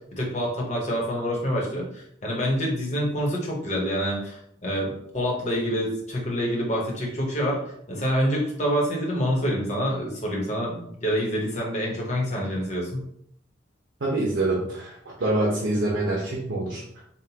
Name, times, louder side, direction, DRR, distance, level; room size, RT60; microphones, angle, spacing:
voice 1, 0.2-7.6 7.9-13.0, equal, 35° left, -2 dB, 1.1 m, -27 dB
voice 2, 14.0-17.0, right 2 dB, 90° right, -4 dB, 1.0 m, -26 dB
5.5 x 2.4 x 2.9 m, 0.71 s
head